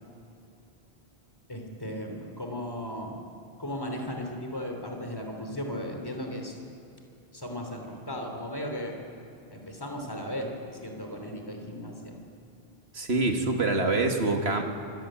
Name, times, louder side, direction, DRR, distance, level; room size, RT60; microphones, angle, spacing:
voice 1, 1.5-3.1 3.6-6.6 7.3-8.9 9.5-12.2, equal, 20° left, 2 dB, 3.2 m, -36 dB
voice 2, 12.9-14.6, right 3 dB, 75° right, 3 dB, 2.3 m, -25 dB
26.0 x 16.0 x 8.9 m, 2.7 s
omnidirectional pair, 1.1 m